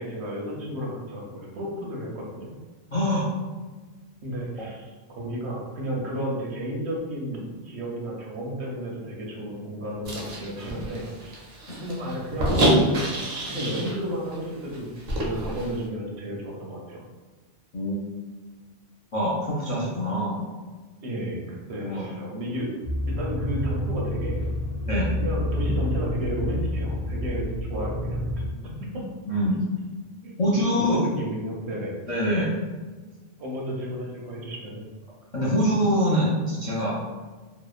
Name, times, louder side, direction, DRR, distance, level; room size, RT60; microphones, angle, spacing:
voice 1, 0.0-2.5 4.2-11.4 11.8-12.6 13.5-14.9 15.2-17.0 19.8-19.9 21.0-22.7 23.1-24.5 25.2-28.2 28.6-28.7 30.2-30.5 30.9-31.9 33.4-34.8, equal, 75° right, -2 dB, 0.9 m, -32 dB
voice 2, 2.9-3.3 4.6-4.7 11.7-11.8 17.7-18.0 19.1-20.4 21.8-22.1 24.9-25.1 28.9-29.0 29.3-29.6 30.4-31.0 32.1-32.5 35.3-36.9, equal, 55° left, -7 dB, 0.4 m, -24 dB
sound 1, 10.0-14.0 14.3-14.4 14.7-15.7, right 1 dB, 55° right, 0.6 m, -26 dB
sound 2, 22.8-28.5, left 1 dB, 75° left, 0.8 m, -28 dB
2.8 x 2.0 x 2.3 m, 1.3 s
omnidirectional pair, 1.2 m